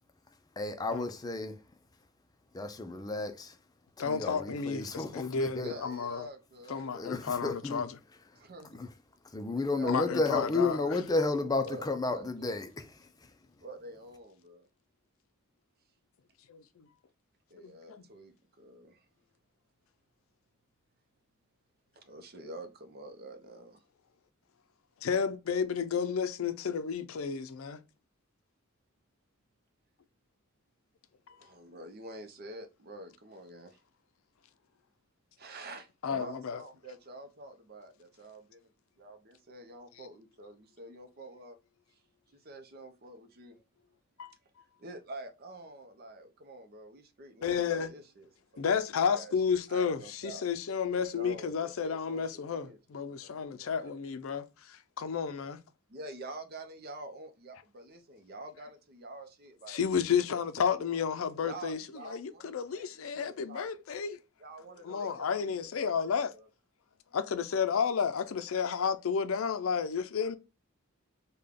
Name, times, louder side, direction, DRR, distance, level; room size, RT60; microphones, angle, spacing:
voice 1, 0.6-1.6 2.5-3.6 4.0-5.7 6.9-7.8 8.7-8.9 9.3-13.3, left 3 dB, 20° left, 0.4 m, -32 dB
voice 2, 4.0-6.3 6.7-8.0 9.9-10.8 16.5-16.9 17.5-18.0 25.0-27.8 36.0-36.6 44.2-44.3 47.4-47.9 48.6-55.6 59.7-64.2 64.8-66.3 67.1-70.4, left 6 dB, 75° left, 0.4 m, -32 dB
voice 3, 5.6-6.9 8.3-8.8 9.4-11.8 12.1-12.5 13.6-14.7 17.5-19.1 21.9-23.8 31.3-33.8 35.4-38.7 39.0-41.6 41.9-42.0 42.3-43.6 44.8-48.6 49.1-49.3 49.7-50.4 51.1-52.8 53.2-53.9 55.9-59.8 60.3-60.9 61.4-63.8 64.4-65.9 66.2-66.5, right 1 dB, 45° right, 0.6 m, -47 dB
3.7 x 2.2 x 3.4 m
head